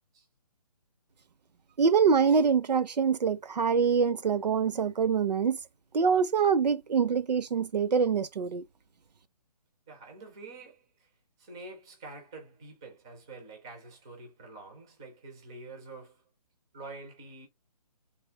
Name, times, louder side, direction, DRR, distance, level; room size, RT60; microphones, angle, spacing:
voice 1, 1.8-5.6 5.9-8.6, right 6 dB, 85° right, 0.6 m, -25 dB
voice 2, 9.9-11.1 11.4-16.2 16.7-17.5, right 3 dB, 5° right, 0.3 m, -47 dB
3.4 x 2.6 x 4.5 m
hypercardioid pair, 165°, 21 cm